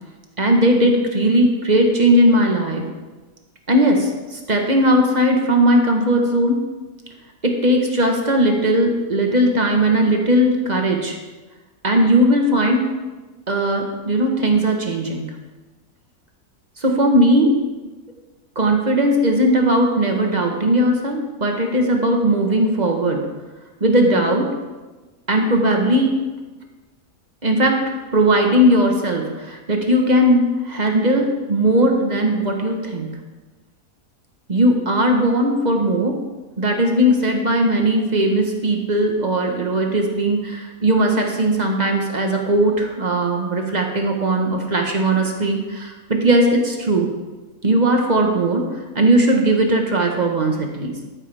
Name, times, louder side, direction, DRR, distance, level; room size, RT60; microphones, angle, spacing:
voice 1, 0.4-2.8 3.7-6.6 7.4-11.2 11.8-12.8 13.5-15.4 16.8-17.6 18.5-23.3 23.8-24.5 25.3-26.1 27.4-33.2 34.5-36.2 36.6-47.1 47.6-51.0, right 1 dB, 30° right, 2 dB, 1.3 m, -18 dB
12.5 x 9.2 x 3.5 m, 1.2 s
omnidirectional pair, 1.7 m